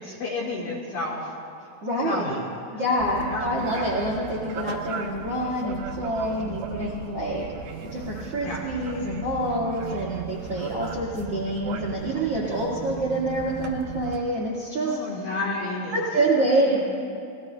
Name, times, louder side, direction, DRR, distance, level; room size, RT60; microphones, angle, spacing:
voice 1, 0.0-1.2 2.0-2.4 3.2-3.6 6.4-6.9 8.4-8.6 14.8-16.0 16.7-16.8, left 2 dB, 60° left, -4 dB, 2.6 m, -31 dB
voice 2, 1.8-2.4 2.7-7.5 7.8-15.3 15.9-16.8, right 1 dB, 55° right, -6 dB, 1.7 m, -27 dB
sound 1, 3.0-14.2, right 6 dB, 75° right, 2.7 m, -37 dB
28.0 x 20.0 x 2.2 m, 2.6 s
omnidirectional pair, 5.7 m